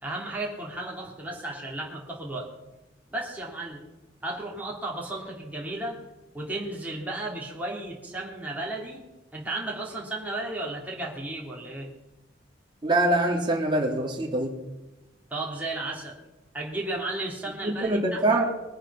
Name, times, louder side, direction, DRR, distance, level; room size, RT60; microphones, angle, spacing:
voice 1, 0.0-2.5 3.1-3.8 4.2-6.0 6.3-9.0 9.3-11.9 15.3-16.2 16.5-18.4, right 2 dB, 10° right, -3 dB, 3.0 m, -34 dB
voice 2, 12.8-14.5 17.6-18.5, right 2 dB, 25° right, -1 dB, 2.3 m, -24 dB
21.5 x 9.0 x 5.6 m, 1.0 s
head